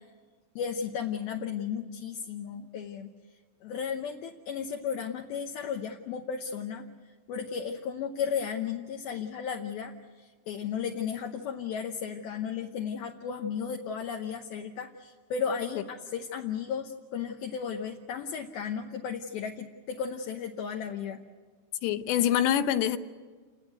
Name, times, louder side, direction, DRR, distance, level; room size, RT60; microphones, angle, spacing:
voice 1, 0.6-3.1 3.6-6.9 7.3-21.2, left 7 dB, 70° left, 2.6 m, -34 dB
voice 2, 21.8-23.0, left 10 dB, 90° left, 3.2 m, -25 dB
29.0 x 19.0 x 8.1 m
omnidirectional pair, 4.9 m